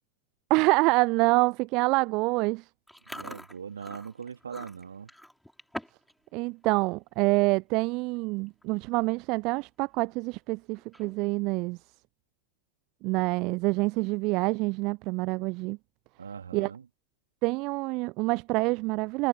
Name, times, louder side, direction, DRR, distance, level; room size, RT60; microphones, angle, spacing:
voice 1, 0.5-2.6 6.3-11.8 13.0-15.8 16.5-16.7 17.4-19.3, right 25 dB, 40° right, 0.6 m, -26 dB
Chewing mastication, 2.9-6.1 6.4-6.7 7.2-7.4 8.2-8.3 8.5-8.8 9.2-9.3 10.8-11.4, equal, ahead, 7.0 m, -44 dB
voice 2, 3.1-5.1 16.2-16.9, right 7 dB, 70° right, 3.6 m, -41 dB
figure-of-eight pair, 90°, 0 cm